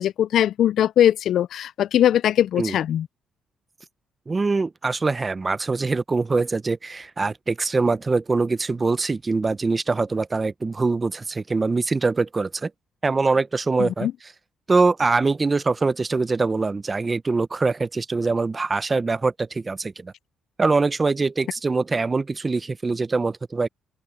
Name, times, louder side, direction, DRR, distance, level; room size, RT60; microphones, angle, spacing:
voice 1, 0.0-3.1 13.8-14.1, left 11 dB, 70° left, 0.3 m, -20 dB
voice 2, 4.3-12.7 13.0-14.1 14.7-20.1 20.6-23.7, right 3 dB, 25° right, 0.7 m, -23 dB
cardioid pair, 90°, 0 cm